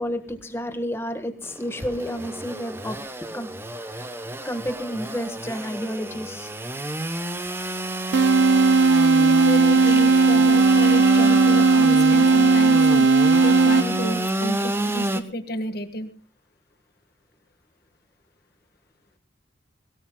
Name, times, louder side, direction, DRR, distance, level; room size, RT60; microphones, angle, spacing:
voice 1, 0.0-3.5 3.8-4.1 4.4-6.5 8.4-8.5, equal, 15° left, 1.5 m, -31 dB
Engine / Sawing, 1.4-15.2, right 1 dB, 10° right, 0.9 m, -29 dB
sound 1, 8.1-14.2, right 4 dB, 80° right, 0.7 m, -17 dB
voice 2, 9.1-13.1 13.4-16.1, left 1 dB, 55° left, 1.5 m, -31 dB
23.0 x 18.0 x 2.3 m
head